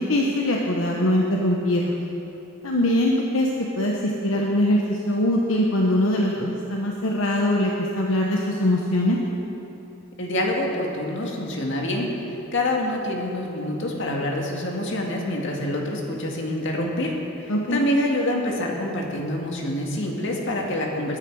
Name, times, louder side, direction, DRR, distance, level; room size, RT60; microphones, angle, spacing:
voice 1, 0.0-2.0 2.6-3.5 3.8-9.2 17.5-17.8, left 1 dB, 80° left, -1 dB, 1.1 m, -22 dB
voice 2, 10.2-12.1 12.5-21.2, left 1 dB, 65° left, 0 dB, 2.0 m, -26 dB
20.5 x 9.8 x 4.8 m, 3.0 s
head